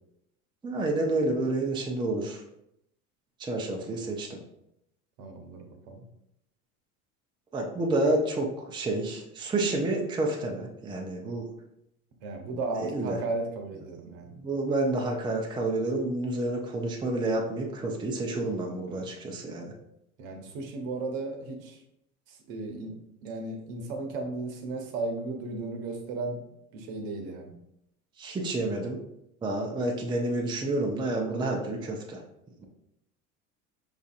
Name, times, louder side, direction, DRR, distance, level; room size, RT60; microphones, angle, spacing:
voice 1, 0.6-2.4 3.4-4.4 7.5-11.5 12.8-13.2 14.3-19.7 28.2-29.0 29.4-32.2, right 2 dB, 10° right, 0 dB, 0.5 m, -29 dB
voice 2, 5.2-6.0 12.2-14.3 18.9-19.1 20.2-21.8 22.3-22.9 23.2-26.4 26.7-27.5, right 3 dB, 60° right, 3 dB, 0.9 m, -35 dB
4.8 x 2.6 x 2.4 m, 0.80 s
hypercardioid pair, 80°, 44 cm